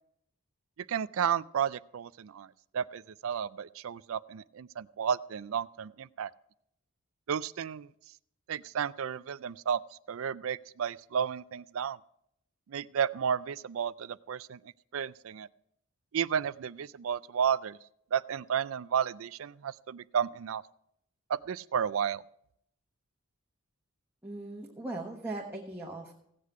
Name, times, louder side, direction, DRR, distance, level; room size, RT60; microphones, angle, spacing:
voice 1, 0.9-6.3 7.3-7.9 8.5-9.8 10.1-12.0 12.7-14.6 14.9-15.5 16.1-17.8 18.1-20.6 21.3-22.2, right 8 dB, 65° right, 17 dB, 0.4 m, -32 dB
voice 2, 24.2-26.2, right 2 dB, 10° right, -2 dB, 1.2 m, -39 dB
16.5 x 8.4 x 4.8 m, 0.73 s
head